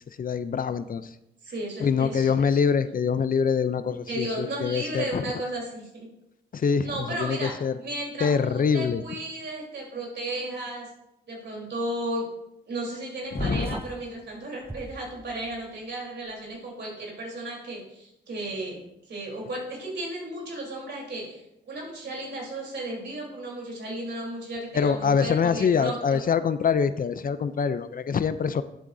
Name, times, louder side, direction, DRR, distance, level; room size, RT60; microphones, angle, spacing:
voice 1, 0.2-1.1 1.8-5.3 6.5-6.9 7.2-7.7 8.2-9.0 13.3-13.8 24.7-28.6, left 6 dB, 50° left, 13 dB, 0.5 m, -24 dB
voice 2, 1.4-2.6 4.1-6.1 6.8-10.9 11.3-12.2 12.7-18.8 19.1-26.2, right 1 dB, 70° right, -2 dB, 3.7 m, -34 dB
sound 1, 13.3-14.1 14.6-15.5, right 1 dB, 15° right, 0.5 m, -35 dB
10.5 x 8.4 x 2.7 m, 0.83 s
cardioid pair, 95°, 19 cm